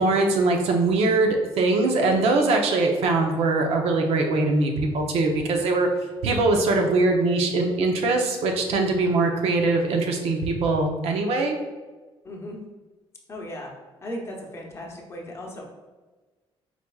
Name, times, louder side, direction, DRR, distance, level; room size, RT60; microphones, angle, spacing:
voice 1, 0.0-5.9 6.2-11.6, right 3 dB, 75° right, 3 dB, 0.6 m, -22 dB
voice 2, 12.2-12.6 13.3-13.7 14.0-15.7, left 1 dB, 25° left, -1 dB, 0.8 m, -36 dB
4.5 x 4.1 x 2.3 m, 1.3 s
cardioid pair, 135°, 10 cm